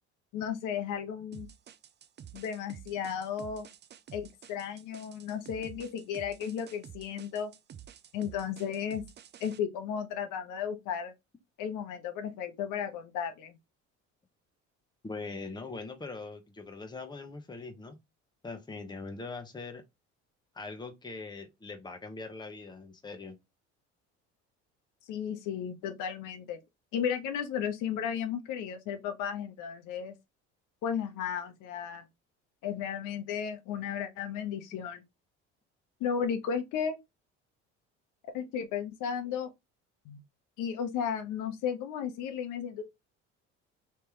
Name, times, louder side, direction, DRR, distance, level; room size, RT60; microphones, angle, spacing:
voice 1, 0.3-1.5 2.3-3.7 4.1-7.5 8.1-9.0 9.4-11.1 11.6-13.5 25.1-26.6 26.9-30.1 30.8-32.0 32.6-35.0 36.0-37.0 38.3-39.5 40.0-40.2 40.6-42.8, left 8 dB, 65° left, 1.0 m, -34 dB
sound 1, 1.3-9.6, right 9 dB, 30° right, 0.5 m, -50 dB
voice 2, 15.0-18.0 18.4-19.8 20.5-23.4, left 3 dB, 15° left, 0.9 m, -41 dB
3.4 x 3.3 x 3.0 m
hypercardioid pair, 65°, 33 cm